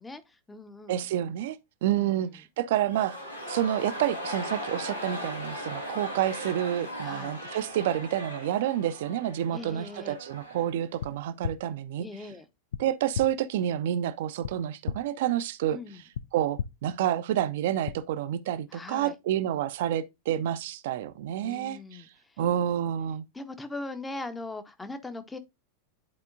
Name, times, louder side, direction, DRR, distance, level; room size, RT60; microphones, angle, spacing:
voice 1, 0.0-1.1 1.9-2.3 7.0-7.4 9.5-10.2 12.0-12.4 15.7-16.0 18.7-19.2 21.4-22.4 23.3-25.4, left 2 dB, 10° left, 0.8 m, -40 dB
voice 2, 0.9-3.2 3.5-12.1 12.8-15.8 16.3-22.0 22.4-23.2, right 11 dB, 55° right, 0.5 m, -29 dB
sound 1, 2.7-10.8 11.1-11.2, equal, 85° left, 1.8 m, -38 dB
sound 2, 11.0-11.1 11.4-11.5 12.7-12.8 13.1-13.2 14.4-14.5 14.9-15.0 16.1-16.2 16.6-16.7 17.9-18.0, left 7 dB, 60° left, 0.3 m, -31 dB
10.5 x 4.4 x 2.4 m
figure-of-eight pair, 90°, 0 cm